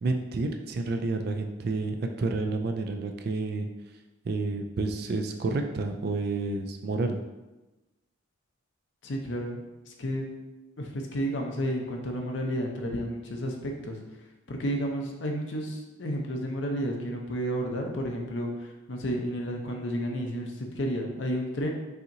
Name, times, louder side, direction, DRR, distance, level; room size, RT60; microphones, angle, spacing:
voice 1, 0.0-3.7 4.2-7.2, right 3 dB, 50° right, 5 dB, 0.3 m, -30 dB
voice 2, 9.0-10.3 10.8-14.0 14.5-21.7, equal, 65° left, 1 dB, 0.6 m, -31 dB
5.6 x 2.8 x 2.6 m, 1.1 s
head